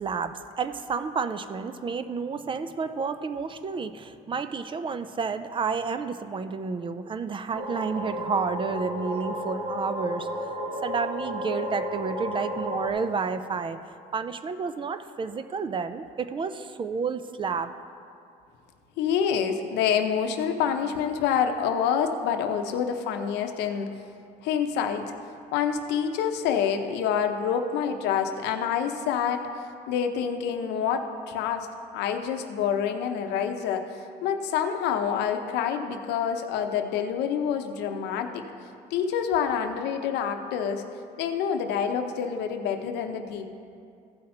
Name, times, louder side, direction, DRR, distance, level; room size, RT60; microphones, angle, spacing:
voice 1, 0.0-10.5 10.8-13.8 14.1-17.7, right 5 dB, 30° right, 11 dB, 0.4 m, -30 dB
sound 1, 7.5-12.9, equal, 45° right, 1.7 m, -32 dB
voice 2, 19.0-23.9 24.4-25.0 25.5-29.5 29.9-31.7 31.9-38.4 38.9-40.8 41.2-43.5, left 7 dB, 85° left, 6 dB, 0.7 m, -27 dB
15.0 x 5.7 x 4.4 m, 2.4 s
cardioid pair, 110°, 17 cm